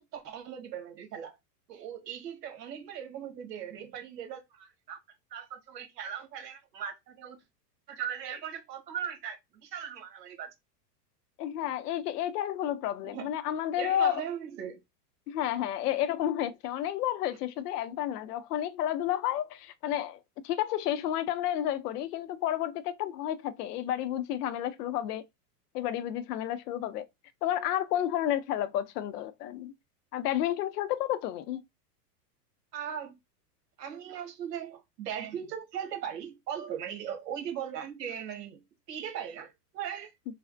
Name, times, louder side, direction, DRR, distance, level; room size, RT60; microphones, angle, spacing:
voice 1, 0.1-1.4 1.7-5.0 5.3-7.4 7.9-10.5 13.0-13.3 13.8-14.8 32.7-33.2 33.8-38.6 38.9-40.1, right 8 dB, 80° right, 1.3 m, -39 dB
voice 2, 11.4-14.2 15.3-25.2 25.7-27.1 27.4-29.7 30.1-31.6, left 11 dB, 70° left, 0.6 m, -31 dB
3.3 x 2.0 x 2.5 m
supercardioid pair, 150°, 48 cm